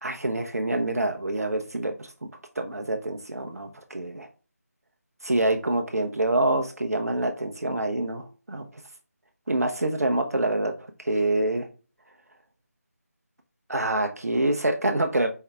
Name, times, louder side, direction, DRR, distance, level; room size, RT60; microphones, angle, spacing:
voice 1, 0.0-2.1 2.6-4.3 5.2-8.6 9.5-10.7 11.0-11.7 13.7-15.3, right 2 dB, 70° right, 5 dB, 0.6 m, -26 dB
4.6 x 3.4 x 3.4 m, 0.35 s
figure-of-eight pair, 160°, 9 cm